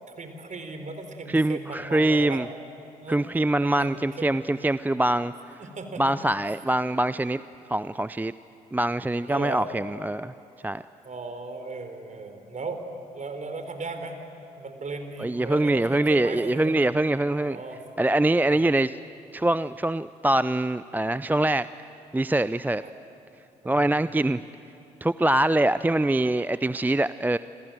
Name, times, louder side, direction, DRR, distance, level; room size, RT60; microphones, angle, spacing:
voice 1, 0.1-2.4 3.0-3.2 3.6-4.4 5.6-6.0 9.3-9.6 11.0-12.8 13.1-14.2 14.6-16.8 17.2-17.8 18.5-18.6 22.8-23.0 23.6-24.2, right 3 dB, 35° right, 7 dB, 4.3 m, -37 dB
voice 2, 1.3-2.5 3.1-5.3 6.0-7.4 7.7-8.3 8.7-10.3 10.6-10.8 15.2-17.6 18.0-19.0 19.3-21.7 22.1-22.8 23.7-24.4 25.0-27.4, right 1 dB, 10° right, 15 dB, 0.6 m, -24 dB
28.0 x 27.5 x 7.8 m, 2.9 s
figure-of-eight pair, 45°, 20 cm